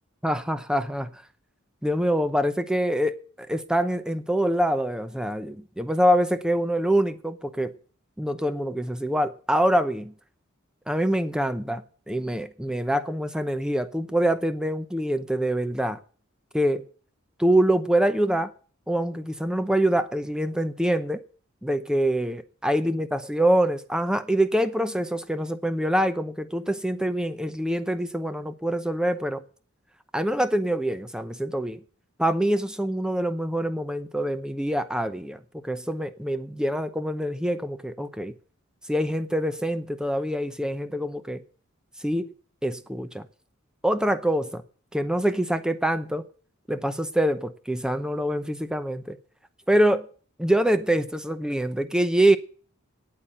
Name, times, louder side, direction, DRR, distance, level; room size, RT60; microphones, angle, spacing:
voice 1, 0.2-1.1 1.8-7.7 8.2-10.1 10.9-16.0 16.5-16.8 17.4-18.5 18.9-21.2 21.6-29.4 30.1-31.8 32.2-38.3 38.9-41.4 42.0-42.3 42.6-43.3 43.8-44.6 44.9-46.2 46.7-49.2 49.7-50.1 50.4-52.4, right 1 dB, 5° right, 0.7 m, -25 dB
9.2 x 8.3 x 8.9 m
head